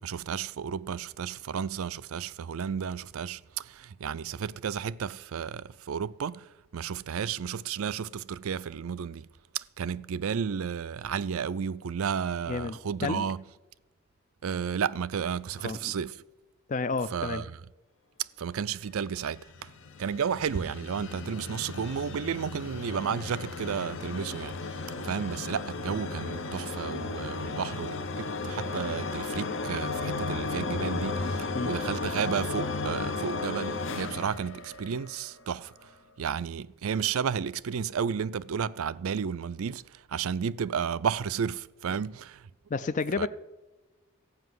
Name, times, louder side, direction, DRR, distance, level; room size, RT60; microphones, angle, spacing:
voice 1, 0.0-9.3 9.5-13.4 14.4-16.1 17.1-17.6 18.2-19.7 20.0-35.9 36.2-42.5 43.2-43.3, right 7 dB, 75° right, 0.4 m, -32 dB
voice 2, 12.5-13.2 15.6-15.9 16.7-17.4 31.5-31.7 42.7-43.3, left 4 dB, 35° left, 0.4 m, -31 dB
sound 1, 19.2-35.3, left 3 dB, 60° left, 0.8 m, -34 dB
14.5 x 5.8 x 9.3 m
head